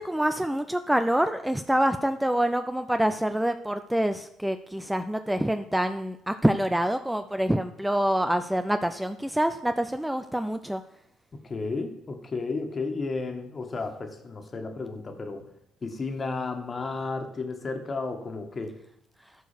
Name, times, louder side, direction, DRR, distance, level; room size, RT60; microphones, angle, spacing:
voice 1, 0.0-10.8, right 1 dB, 5° right, 9 dB, 0.5 m, -26 dB
voice 2, 11.4-15.5 15.8-18.7, left 3 dB, 35° left, 5 dB, 1.7 m, -33 dB
13.5 x 4.6 x 5.1 m, 0.75 s
supercardioid pair, 70°, 0 cm